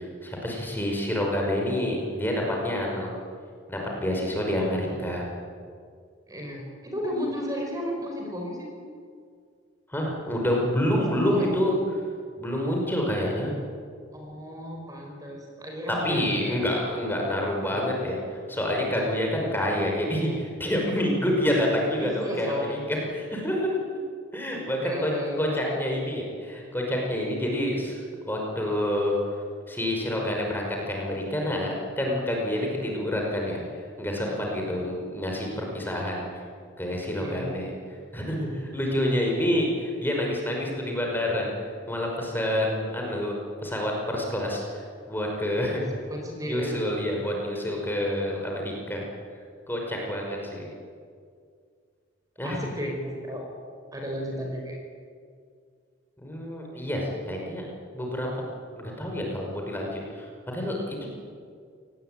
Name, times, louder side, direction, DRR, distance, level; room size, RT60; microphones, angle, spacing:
voice 1, 0.0-3.1 3.7-5.2 9.9-11.7 12.4-13.5 16.0-23.8 24.3-25.1 25.4-29.2 29.7-33.6 34.0-36.3 36.8-37.7 38.1-41.5 41.9-43.4 43.6-45.8 46.5-49.0 49.7-50.7 52.4-52.6 56.2-57.6 57.9-58.3 58.7-61.0, left 1 dB, 10° left, -1 dB, 5.5 m, -28 dB
voice 2, 6.3-8.7 11.2-11.5 14.1-16.7 17.7-17.8 22.0-22.8 24.8-25.9 37.2-37.5 46.1-46.8 52.4-53.4 53.9-54.8, equal, 20° right, 1 dB, 5.0 m, -34 dB
27.5 x 19.5 x 9.1 m, 2.1 s
head